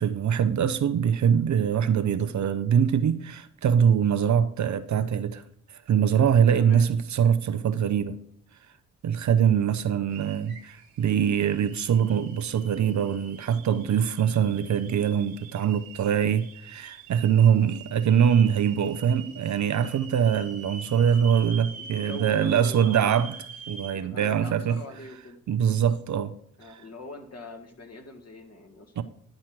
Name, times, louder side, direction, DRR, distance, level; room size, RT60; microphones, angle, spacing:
voice 1, 0.0-5.4 5.7-8.2 9.0-23.4 23.7-24.7 25.5-26.3 26.7-26.8 29.0-29.1, right 8 dB, 50° right, 0.6 m, -23 dB
voice 2, 6.6-6.9 17.5-17.7 21.8-23.2 23.9-25.4 26.6-28.9, left 2 dB, 40° left, 1.9 m, -42 dB
sound 1, 10.1-23.9, right 6 dB, 65° right, 1.5 m, -45 dB
10.5 x 4.3 x 6.0 m
hypercardioid pair, 40°, 39 cm